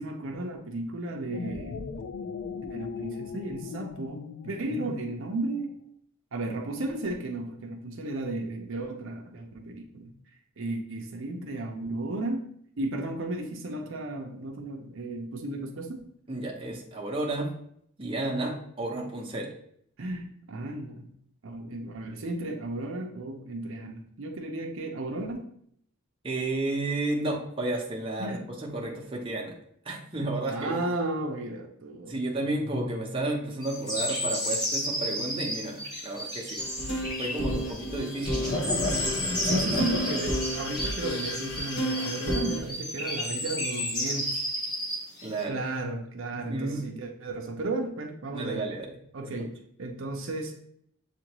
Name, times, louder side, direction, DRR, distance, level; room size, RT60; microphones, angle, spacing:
voice 1, 0.0-1.9 2.7-5.7 6.3-10.1 10.6-12.5 12.8-16.1 18.5-18.6 20.0-21.1 21.4-25.5 28.2-28.4 30.5-32.2 39.4-44.4 45.5-48.7 49.1-49.5 49.8-50.5, right 2 dB, 65° right, 2 dB, 0.6 m, -34 dB
sound 1, 1.2-5.7, left 5 dB, 80° left, 0.3 m, -39 dB
voice 2, 4.7-5.0 16.3-17.5 18.0-19.5 26.2-29.5 29.8-30.8 32.1-36.6 37.2-38.5 45.2-45.6 46.3-46.9 48.3-48.9 49.2-49.5, right 2 dB, 25° right, -1 dB, 0.7 m, -32 dB
sound 2, 33.6-45.4, equal, 20° left, 1.3 m, -33 dB
sound 3, 36.6-42.6, equal, 55° left, 0.9 m, -30 dB
7.2 x 2.5 x 2.9 m, 0.68 s
head